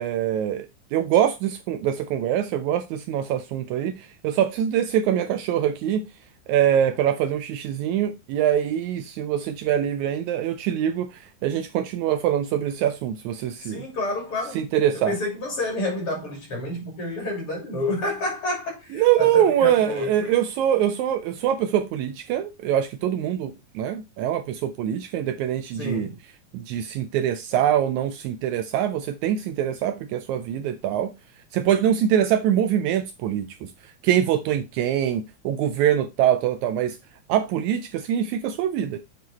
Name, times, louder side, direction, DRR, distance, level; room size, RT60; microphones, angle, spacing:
voice 1, 0.0-6.1 6.5-13.9 14.6-15.2 18.9-26.1 26.5-31.1 31.5-37.0 37.3-39.0, right 10 dB, 80° right, 1.7 m, -24 dB
voice 2, 13.6-14.6 15.1-20.3 25.8-26.2, left 2 dB, 40° left, 3.4 m, -29 dB
7.8 x 4.3 x 4.0 m
omnidirectional pair, 3.7 m